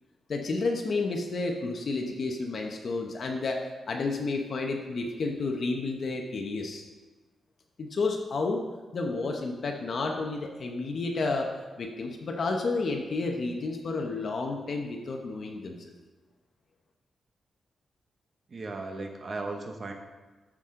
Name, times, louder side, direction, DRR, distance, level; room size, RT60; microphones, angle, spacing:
voice 1, 0.3-6.8 7.8-8.6 8.9-11.5 11.8-15.9, left 3 dB, 45° left, 2 dB, 0.9 m, -31 dB
voice 2, 18.5-19.9, right 3 dB, 35° right, 4 dB, 0.9 m, -36 dB
13.5 x 6.2 x 3.7 m, 1.2 s
wide cardioid pair, 175°, 0 cm